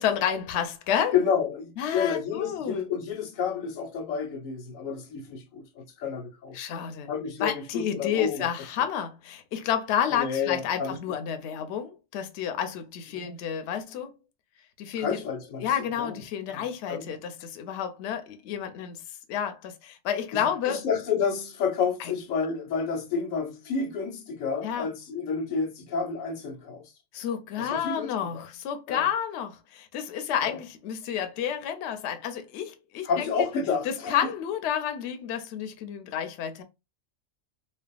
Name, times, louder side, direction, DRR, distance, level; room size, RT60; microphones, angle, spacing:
voice 1, 0.0-1.1 1.8-2.8 6.5-7.1 7.4-14.1 14.8-15.2 15.6-20.8 22.0-22.1 24.6-24.9 27.1-33.3 33.8-36.6, left 9 dB, 65° left, 0.8 m, -30 dB
voice 2, 1.1-6.6 7.1-8.5 10.1-10.9 13.1-13.4 15.0-16.2 16.5-17.2 20.3-26.8 27.6-28.4 28.9-29.0 30.4-30.6 33.0-34.1, left 6 dB, 85° left, 1.1 m, -30 dB
3.3 x 2.0 x 2.3 m
omnidirectional pair, 1.3 m